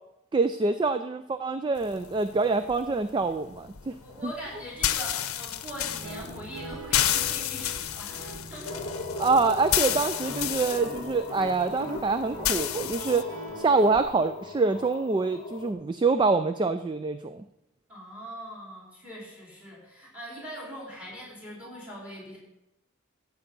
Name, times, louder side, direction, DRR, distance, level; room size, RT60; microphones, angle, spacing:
voice 1, 0.3-3.9 4.2-4.3 9.2-17.4, right 3 dB, 20° right, 10 dB, 0.3 m, -26 dB
sound 1, 1.8-13.2, left 11 dB, 90° left, 0.7 m, -32 dB
voice 2, 4.0-8.9 17.9-22.4, equal, 5° right, -4 dB, 4.2 m, -42 dB
Guitar, 5.7-14.0, right 1 dB, 85° right, 2.3 m, -43 dB
sound 2, 8.7-15.7, left 3 dB, 35° left, 1.0 m, -40 dB
12.5 x 8.3 x 5.4 m, 0.91 s
head